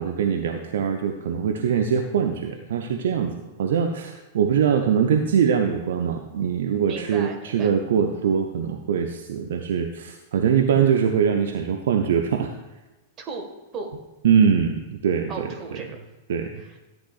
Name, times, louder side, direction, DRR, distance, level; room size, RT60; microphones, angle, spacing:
voice 1, 0.0-12.5 14.2-15.5 16.3-16.6, right 7 dB, 60° right, 5 dB, 0.7 m, -22 dB
voice 2, 6.9-7.7 13.2-13.5 13.7-13.9 15.3-16.0 16.6-16.8, right 4 dB, 30° right, 3 dB, 1.7 m, -36 dB
13.5 x 9.1 x 2.5 m, 1.1 s
figure-of-eight pair, 95°, 0 cm